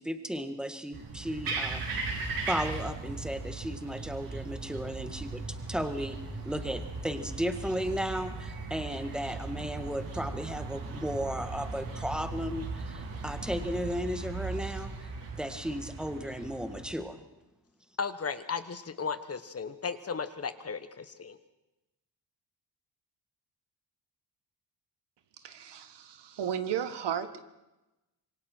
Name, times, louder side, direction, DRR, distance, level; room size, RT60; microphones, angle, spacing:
voice 1, 0.0-2.0 2.5-15.1 15.4-17.2, equal, ahead, 7 dB, 1.7 m, -35 dB
sound 1, 0.9-16.9, right 3 dB, 55° right, 3.9 m, -38 dB
voice 2, 18.0-21.4, left 5 dB, 35° left, 11 dB, 1.2 m, -35 dB
voice 3, 25.4-27.4, right 9 dB, 75° right, 9 dB, 1.6 m, -34 dB
26.5 x 23.0 x 4.5 m, 1.0 s
cardioid pair, 120°, 42 cm